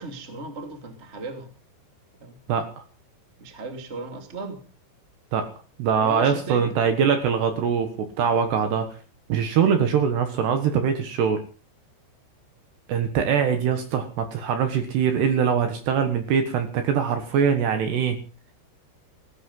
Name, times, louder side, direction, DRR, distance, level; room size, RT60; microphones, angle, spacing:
voice 1, 0.0-1.5 2.2-2.4 3.4-4.6 6.0-6.7, right 3 dB, 20° right, 5 dB, 1.8 m, -35 dB
voice 2, 2.5-2.8 5.3-5.5 5.8-8.9 9.3-11.4 12.9-18.2, right 7 dB, 65° right, 8 dB, 3.1 m, -23 dB
16.5 x 12.5 x 5.5 m, 0.37 s
omnidirectional pair, 5.9 m